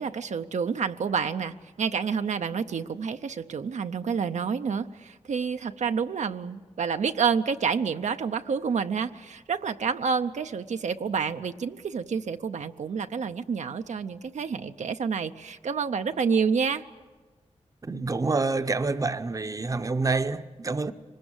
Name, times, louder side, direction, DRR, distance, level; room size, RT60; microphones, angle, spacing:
voice 1, 0.0-16.8, right 6 dB, 85° right, 0.6 m, -28 dB
voice 2, 17.8-20.9, right 3 dB, 30° right, 0.7 m, -27 dB
24.5 x 20.0 x 8.0 m
wide cardioid pair, 110°, 12 cm